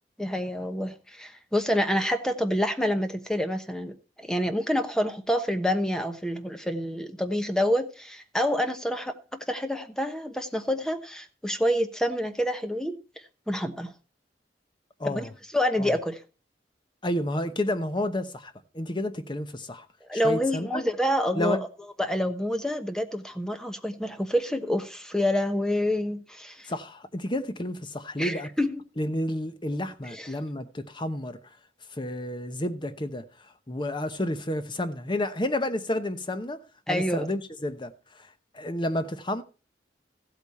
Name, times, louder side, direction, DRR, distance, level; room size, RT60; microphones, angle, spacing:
voice 1, 0.2-13.0 13.5-13.9 15.1-16.2 20.1-21.6 22.0-26.7 28.2-28.8 30.1-30.3 36.9-37.3, equal, 5° left, 1.0 m, -27 dB
voice 2, 15.0-15.3 15.8-15.9 17.0-19.9 20.1-20.8 21.3-21.6 26.7-28.5 29.0-31.4 31.9-33.2 33.7-37.9 38.5-39.4, left 1 dB, 25° left, 1.0 m, -30 dB
15.0 x 8.4 x 4.3 m
head